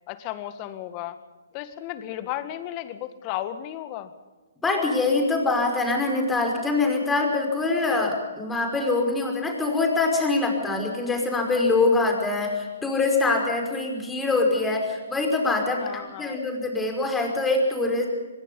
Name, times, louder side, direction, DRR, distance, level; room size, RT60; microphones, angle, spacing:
voice 1, 0.1-1.2 1.5-4.1 15.8-16.4, left 13 dB, 30° left, 11 dB, 1.9 m, -34 dB
voice 2, 4.6-18.1, left 3 dB, 10° left, 2 dB, 5.3 m, -24 dB
24.0 x 21.5 x 5.5 m, 1.3 s
hypercardioid pair, 135°, 0 cm